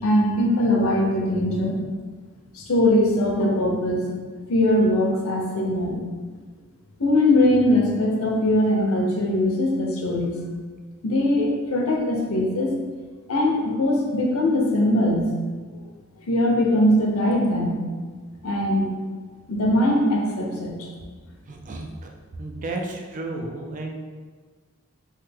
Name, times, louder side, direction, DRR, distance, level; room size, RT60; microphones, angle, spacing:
voice 1, 0.0-1.8 2.5-4.1 4.5-6.0 7.0-10.3 11.0-12.8 13.3-15.3 15.7-15.8 16.3-17.8 18.4-18.9 19.5-20.9, left 1 dB, 85° left, 0 dB, 0.6 m, -21 dB
voice 2, 21.5-22.1 22.4-23.9, right 2 dB, 35° right, 2 dB, 0.4 m, -32 dB
3.2 x 2.1 x 3.3 m, 1.5 s
head